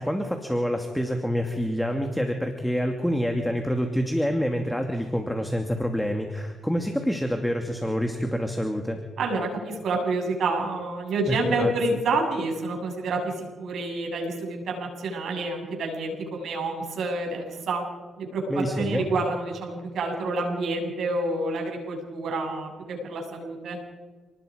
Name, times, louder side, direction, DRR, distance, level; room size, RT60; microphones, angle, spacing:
voice 1, 0.0-9.0 11.3-11.7 18.5-19.1, equal, 5° left, 4 dB, 2.6 m, -27 dB
voice 2, 9.2-17.8 18.2-23.8, right 2 dB, 70° right, 2 dB, 7.3 m, -28 dB
29.5 x 20.0 x 5.3 m, 1.3 s
cardioid pair, 70°, 0 cm